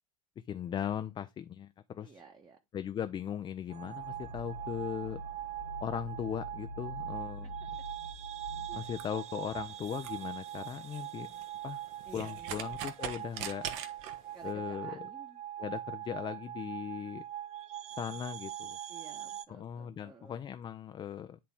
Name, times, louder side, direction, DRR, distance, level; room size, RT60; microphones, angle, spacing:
voice 1, 0.5-2.2 2.7-5.2 5.8-7.5 8.7-11.3 11.6-11.8 12.1-13.7 14.4-15.1 15.6-17.2 18.0-18.8 19.5-21.4, left 9 dB, 25° left, 0.5 m, -38 dB
voice 2, 2.0-2.6 8.6-8.8 12.0-12.8 14.3-15.4 18.9-20.4, right 5 dB, 20° right, 1.3 m, -53 dB
sound 1, 3.7-9.2, equal, 80° left, 0.9 m, -45 dB
sound 2, 3.7-19.5, right 12 dB, 35° right, 0.8 m, -42 dB
sound 3, 8.7-14.5, right 9 dB, 55° right, 1.2 m, -44 dB
10.5 x 4.0 x 3.5 m
figure-of-eight pair, 80°, 19 cm